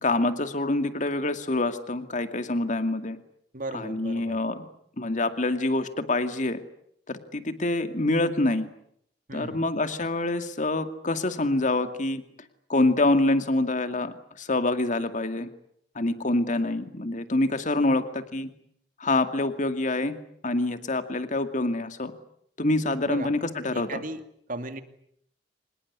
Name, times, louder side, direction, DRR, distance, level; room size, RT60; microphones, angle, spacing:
voice 1, 0.0-3.2 3.7-4.7 5.0-6.6 7.1-8.7 9.3-12.2 12.7-15.5 16.0-18.5 19.0-20.2 20.4-22.1 22.6-23.9, left 2 dB, 45° left, 9 dB, 2.3 m, -26 dB
voice 2, 3.5-4.4 9.3-9.7 23.1-23.3 23.7-24.2 24.5-24.8, right 2 dB, 50° right, 9 dB, 2.4 m, -36 dB
25.5 x 21.0 x 9.8 m, 0.71 s
head